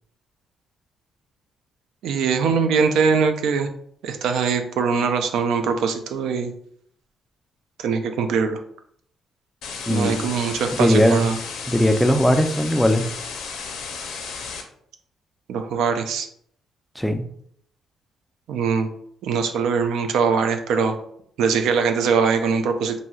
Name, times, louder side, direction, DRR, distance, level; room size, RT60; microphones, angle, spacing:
voice 1, 2.0-3.7 4.0-6.5 7.8-8.6 9.9-11.4 15.5-16.3 18.5-18.9 19.2-21.0 21.4-22.9, right 5 dB, 80° right, 7 dB, 0.3 m, -22 dB
sound 1, 9.6-14.6, left 5 dB, 85° left, 0.5 m, -33 dB
voice 2, 9.9-10.2 10.8-11.2 11.7-13.0 17.0-17.2, equal, 5° left, 6 dB, 0.4 m, -18 dB
3.0 x 2.6 x 2.3 m, 0.66 s
cardioid pair, 90°, 0 cm